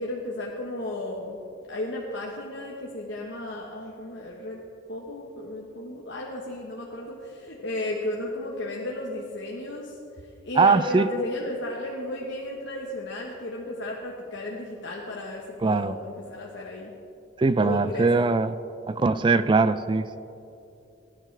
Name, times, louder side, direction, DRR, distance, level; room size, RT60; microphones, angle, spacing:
voice 1, 0.0-1.4 1.7-4.6 4.9-16.9 17.6-18.1, left 1 dB, 60° left, -2 dB, 1.2 m, -34 dB
voice 2, 10.6-11.1 15.6-16.0 17.4-18.6 18.9-20.2, right 4 dB, 25° right, 13 dB, 0.3 m, -21 dB
21.0 x 11.0 x 3.4 m, 2.7 s
head